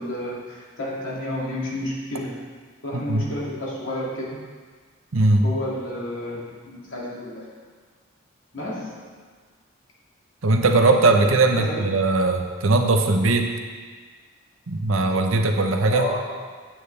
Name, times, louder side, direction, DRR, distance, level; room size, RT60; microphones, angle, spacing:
voice 1, 0.0-2.4 2.8-4.4 5.4-7.5 8.5-9.1 11.6-11.8 15.9-16.2, left 1 dB, 75° left, -5 dB, 2.3 m, -31 dB
voice 2, 2.9-3.2 5.1-5.5 10.4-13.5 14.7-16.1, right 2 dB, 85° right, 4 dB, 0.8 m, -19 dB
9.1 x 8.6 x 3.3 m, 1.5 s
head